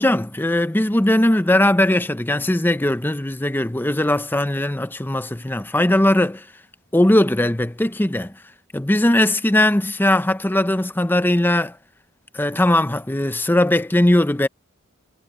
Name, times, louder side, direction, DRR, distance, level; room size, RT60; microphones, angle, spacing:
voice 1, 0.0-6.5 6.9-8.3 8.7-11.8 12.3-14.5, left 1 dB, 10° left, 0.6 m, -19 dB
head